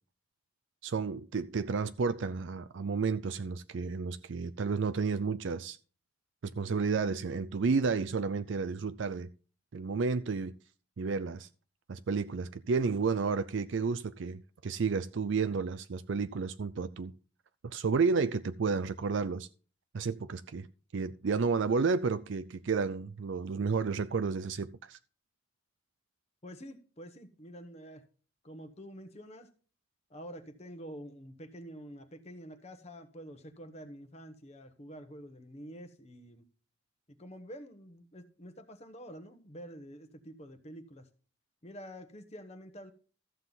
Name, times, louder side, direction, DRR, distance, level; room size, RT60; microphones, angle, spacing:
voice 1, 0.8-5.8 6.4-9.3 9.7-10.5 11.0-11.5 11.9-17.1 17.6-19.5 19.9-20.7 20.9-25.0, right 5 dB, 65° right, 0.5 m, -31 dB
voice 2, 26.4-28.0 28.4-29.5 30.1-36.5 37.1-41.1 41.6-42.9, equal, 30° left, 1.0 m, -48 dB
13.5 x 7.5 x 4.0 m
head